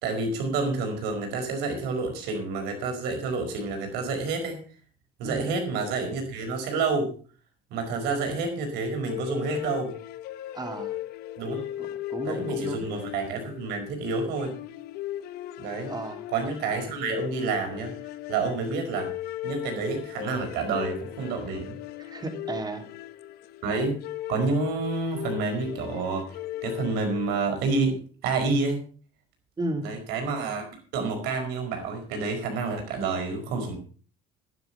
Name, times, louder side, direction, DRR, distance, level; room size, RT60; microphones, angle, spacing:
voice 1, 0.0-4.6 5.2-7.1 7.7-9.9 11.4-11.6 12.2-14.6 15.6-15.9 16.3-17.9 18.3-19.1 19.4-21.8 23.6-24.0 24.3-26.4 26.6-28.8 29.8-30.6 30.9-33.8, right 4 dB, 70° right, 4 dB, 5.1 m, -29 dB
sound 1, 9.1-27.6, left 14 dB, 65° left, 0.9 m, -37 dB
voice 2, 10.5-11.0 11.8-12.9 15.9-16.2 22.0-22.8 29.6-29.9, right 2 dB, 25° right, 5 dB, 3.1 m, -34 dB
11.0 x 11.0 x 5.5 m, 0.41 s
supercardioid pair, 85°, 17 cm